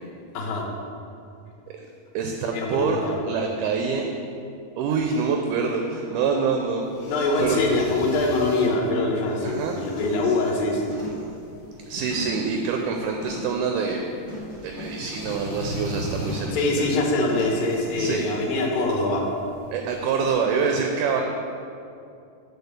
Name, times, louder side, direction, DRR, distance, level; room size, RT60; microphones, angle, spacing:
voice 1, 0.3-0.7 2.5-3.1 7.1-10.8 16.5-19.3, left 2 dB, 85° left, 0 dB, 2.7 m, -24 dB
voice 2, 2.1-4.1 4.8-6.8 7.4-7.8 9.4-9.8 10.2-10.3 11.9-14.0 14.6-16.8 18.0-18.3 19.7-21.2, right 5 dB, 80° right, 2 dB, 2.0 m, -26 dB
sound 1, 6.8-20.3, equal, 70° left, 0.9 m, -40 dB
sound 2, 8.7-8.9 9.3-9.6 10.0-10.4 10.9-12.6 13.2-13.6 14.3-15.5 16.2-16.6 17.3-17.7 18.1-18.2, left 3 dB, 40° left, 2.2 m, -39 dB
6.9 x 4.7 x 6.5 m, 2.5 s
omnidirectional pair, 3.9 m